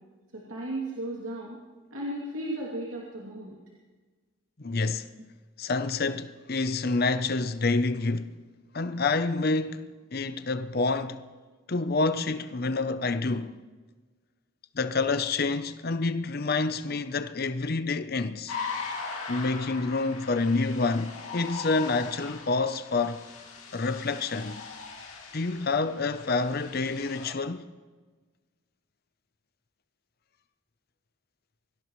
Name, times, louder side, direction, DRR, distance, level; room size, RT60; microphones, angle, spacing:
voice 1, 0.3-1.6 1.9-3.6, right 1 dB, 75° right, 2.7 m, -35 dB
voice 2, 4.6-5.1 5.6-8.3 8.7-9.9 10.1-11.2 11.7-13.6 14.7-18.6 19.3-23.2 23.7-24.7 25.3-27.7, left 3 dB, 45° left, 0.7 m, -28 dB
sound 1, 18.5-27.3, left 5 dB, 85° left, 2.5 m, -40 dB
24.0 x 16.5 x 3.2 m
head